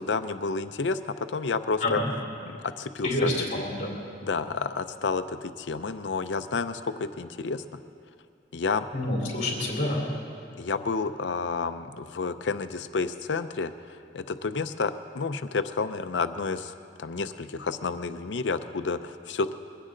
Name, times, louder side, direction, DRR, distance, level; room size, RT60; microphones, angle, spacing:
voice 1, 0.0-2.0 2.5-3.5 4.2-7.6 8.5-8.9 10.6-19.5, left 4 dB, 80° left, 10 dB, 0.6 m, -30 dB
voice 2, 3.0-3.9 8.9-10.1, left 1 dB, 40° left, -2 dB, 3.5 m, -28 dB
22.0 x 16.5 x 3.9 m, 2.4 s
head